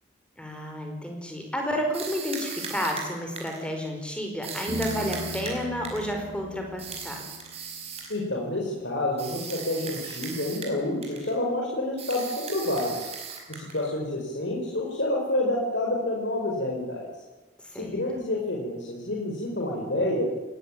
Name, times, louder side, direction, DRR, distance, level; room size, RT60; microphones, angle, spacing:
voice 1, 0.4-7.2 17.7-17.9, equal, 5° left, 2 dB, 4.8 m, -31 dB
sound 1, 1.9-3.7 4.4-6.2 6.8-8.2 9.2-10.8 11.0-11.4 12.0-13.9, right 6 dB, 35° right, 5.0 m, -38 dB
Piano, 4.7-8.4, left 2 dB, 55° right, 6.2 m, -40 dB
voice 2, 8.1-13.1 13.5-17.1 17.7-20.3, left 1 dB, 70° left, -2 dB, 4.8 m, -28 dB
20.0 x 18.5 x 8.9 m, 1.2 s
head